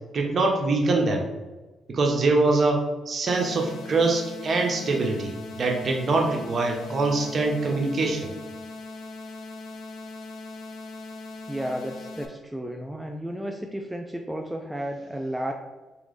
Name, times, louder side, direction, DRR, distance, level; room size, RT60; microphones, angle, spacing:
voice 1, 0.1-1.2 1.9-8.3, right 3 dB, 45° right, 1 dB, 0.8 m, -24 dB
sound 1, 3.3-12.3, left 3 dB, 70° left, 0.5 m, -40 dB
voice 2, 11.5-15.5, equal, 5° right, 2 dB, 0.4 m, -33 dB
3.5 x 3.1 x 3.9 m, 1.2 s
cardioid pair, 90°, 0 cm